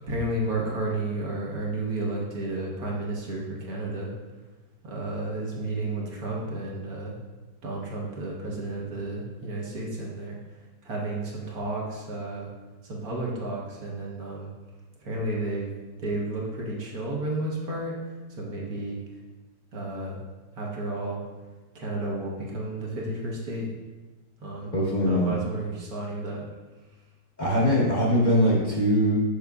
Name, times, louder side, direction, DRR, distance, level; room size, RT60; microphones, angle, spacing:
voice 1, 0.0-4.1 4.8-7.2 7.6-10.4 10.8-12.5 12.8-14.5 15.0-15.7 16.0-17.9 18.3-19.0 19.7-20.2 20.5-21.2 21.7-23.7 24.4-24.7 25.0-26.4, right 2 dB, 60° right, -3 dB, 1.5 m, -32 dB
voice 2, 24.7-25.4 27.4-29.2, equal, 30° left, -7 dB, 1.2 m, -22 dB
6.5 x 6.2 x 2.3 m, 1.2 s
omnidirectional pair, 1.8 m